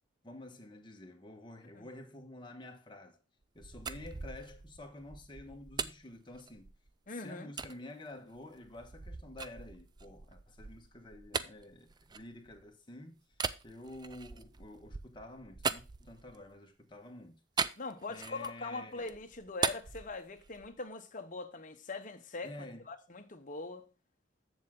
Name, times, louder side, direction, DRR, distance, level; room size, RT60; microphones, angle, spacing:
voice 1, 0.2-3.2 3.5-6.7 7.1-13.2 13.6-17.4 18.1-19.1 22.4-22.9, left 1 dB, 25° left, 1.3 m, -49 dB
sound 1, 3.4-6.9 7.6-7.7 8.3-12.7 13.3-16.5 17.6-18.7 19.0-20.8, right 5 dB, 20° right, 0.3 m, -40 dB
voice 2, 7.1-7.5 17.8-22.5 22.9-23.8, left 3 dB, 40° left, 1.0 m, -42 dB
7.4 x 7.3 x 3.7 m
head